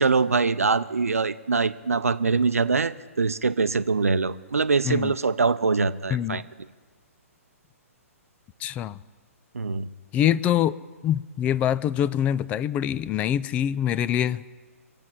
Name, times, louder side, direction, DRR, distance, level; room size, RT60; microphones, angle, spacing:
voice 1, 0.0-6.4 9.5-9.9, right 4 dB, 75° right, 13 dB, 0.7 m, -23 dB
voice 2, 6.1-6.4 8.6-9.0 10.1-10.8 11.0-14.5, left 10 dB, 15° left, 18 dB, 0.3 m, -24 dB
24.5 x 8.4 x 5.7 m, 1.4 s
figure-of-eight pair, 120°, 8 cm